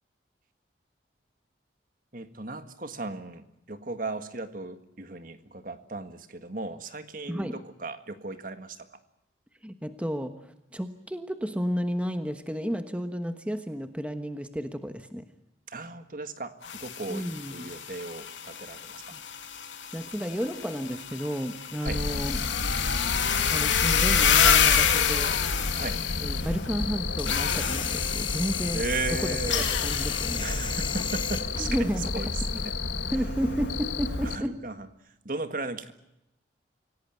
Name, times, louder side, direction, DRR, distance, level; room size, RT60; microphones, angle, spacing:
voice 1, 2.1-8.9 15.7-19.1 21.8-22.0 25.7-26.0 28.7-29.7 30.4-32.7 34.2-34.9 35.3-35.9, right 3 dB, 45° right, 10 dB, 1.7 m, -36 dB
voice 2, 7.3-7.6 9.6-15.2 17.1-17.7 19.1-19.2 19.9-22.4 23.5-25.4 26.2-28.8 29.1-30.4 31.6-32.3 33.1-34.6, equal, 5° right, 8 dB, 1.2 m, -32 dB
sound 1, 16.6-26.6 27.3-28.7 29.5-30.7, left 8 dB, 90° left, 2.7 m, -28 dB
Cricket, 21.9-34.4, left 3 dB, 70° left, 1.4 m, -31 dB
sound 2, 26.8-32.7, left 6 dB, 25° left, 1.4 m, -36 dB
26.0 x 17.5 x 9.3 m, 0.88 s
head